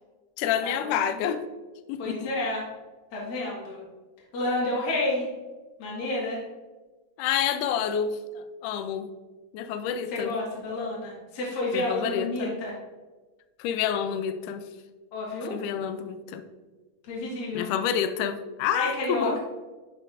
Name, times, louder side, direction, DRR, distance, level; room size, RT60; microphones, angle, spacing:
voice 1, 0.4-1.4 1.9-2.3 7.2-9.1 9.5-10.4 11.7-12.6 13.6-14.6 15.5-16.4 17.5-19.4, left 8 dB, 80° left, 10 dB, 1.9 m, -28 dB
voice 2, 2.0-2.6 3.1-3.8 4.3-5.3 5.8-6.4 10.1-12.7 15.1-15.6 17.1-17.7 18.7-19.4, left 2 dB, 40° left, -5 dB, 1.7 m, -30 dB
10.0 x 4.4 x 2.5 m, 1.3 s
omnidirectional pair, 3.9 m